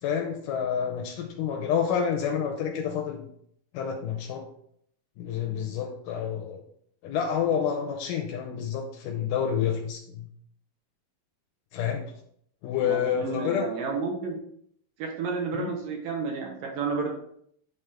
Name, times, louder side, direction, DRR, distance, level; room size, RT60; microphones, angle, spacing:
voice 1, 0.0-3.3 3.7-4.5 5.2-6.6 7.0-10.3 11.7-12.1 12.6-13.7 15.5-15.7, left 8 dB, 80° left, 3 dB, 2.0 m, -28 dB
voice 2, 12.8-14.4 15.0-17.1, right 4 dB, 70° right, 0 dB, 2.6 m, -31 dB
9.7 x 3.6 x 3.4 m, 0.68 s
omnidirectional pair, 4.4 m